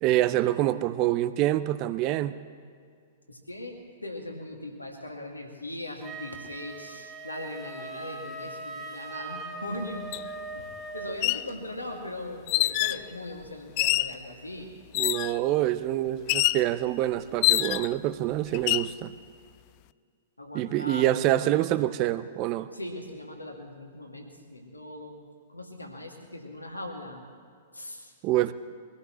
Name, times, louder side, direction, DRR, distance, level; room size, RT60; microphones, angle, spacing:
voice 1, 0.0-2.4 15.0-19.1 20.5-22.7 28.2-28.5, right 14 dB, 35° right, 0.6 m, -26 dB
voice 2, 3.3-10.1 10.5-10.7 10.9-14.7 20.4-21.1 22.7-25.2 25.5-27.2 27.7-28.1, left 1 dB, 85° left, 2.3 m, -39 dB
Wind instrument woodwind instrument, 6.0-11.2, right 2 dB, 10° right, 1.9 m, -40 dB
sound 1, 10.1-10.2 11.1-11.5 12.5-13.0 13.8-14.2 14.9-15.4 16.3-16.6 17.4-18.0 18.5-18.9, left 18 dB, 40° left, 0.3 m, -25 dB
23.5 x 17.0 x 3.2 m
figure-of-eight pair, 105°, 0 cm